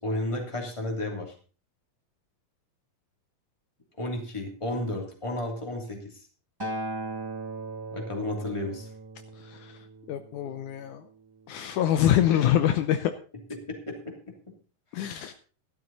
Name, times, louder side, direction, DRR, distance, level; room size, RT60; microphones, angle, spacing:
voice 1, 0.0-1.3 4.0-6.1 7.9-8.9 13.7-14.1, left 1 dB, 10° left, 1 dB, 2.6 m, -32 dB
Acoustic guitar, 6.6-10.9 11.7-11.8, right 2 dB, 15° right, 0.7 m, -38 dB
voice 2, 9.4-9.8 10.1-11.0 11.5-13.1 14.9-15.3, left 11 dB, 75° left, 9 dB, 2.1 m, -25 dB
13.5 x 12.0 x 4.0 m, 0.38 s
omnidirectional pair, 3.8 m